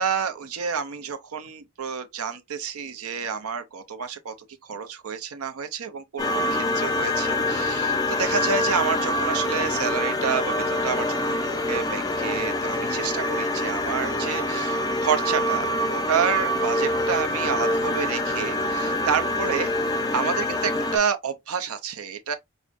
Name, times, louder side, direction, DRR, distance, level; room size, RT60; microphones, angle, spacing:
voice 1, 0.0-4.3 4.6-19.7 20.1-22.3, right 6 dB, 85° right, 0.6 m, -29 dB
sound 1, 6.2-21.0, left 1 dB, 15° left, 0.4 m, -25 dB
4.8 x 2.1 x 2.5 m
head